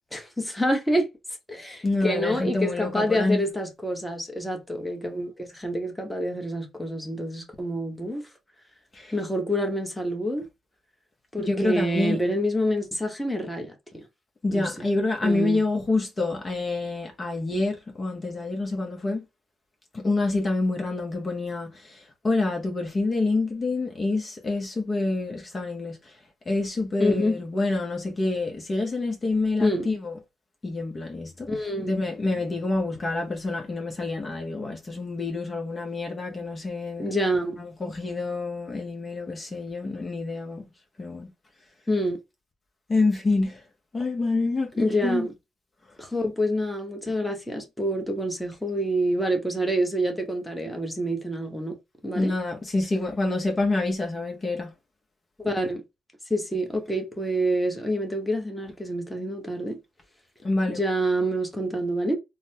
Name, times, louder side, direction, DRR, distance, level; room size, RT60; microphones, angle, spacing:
voice 1, 0.1-1.1 1.5-8.2 9.1-10.4 11.3-14.0 14.5-14.7 15.2-15.6 27.0-27.4 29.6-29.9 31.5-31.9 37.0-37.6 41.9-42.2 44.8-45.3 46.0-51.7 52.0-52.3 55.4-55.8 56.3-59.8 60.7-62.2, equal, 5° left, 1.0 m, -27 dB
voice 2, 1.8-3.4 8.9-9.1 11.4-12.2 14.4-19.2 19.9-26.2 26.5-30.2 30.6-31.5 31.8-37.1 37.6-40.6 41.0-41.3 42.9-43.6 43.9-45.3 52.1-54.7 60.4-60.8, left 2 dB, 30° left, 0.8 m, -27 dB
3.9 x 2.1 x 2.7 m
cardioid pair, 90°, 0 cm